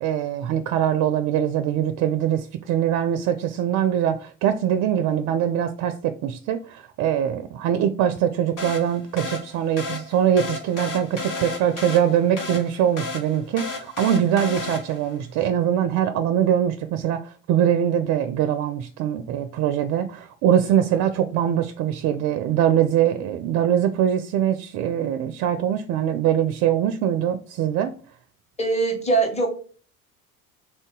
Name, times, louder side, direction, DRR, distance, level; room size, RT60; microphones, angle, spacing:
voice 1, 0.0-27.9, right 10 dB, 40° right, 0.4 m, -22 dB
sound 1, 8.6-15.2, left 3 dB, 45° left, 1.4 m, -33 dB
voice 2, 28.6-29.5, right 3 dB, 15° left, 1.2 m, -21 dB
3.5 x 2.6 x 3.7 m
hypercardioid pair, 65°, 43 cm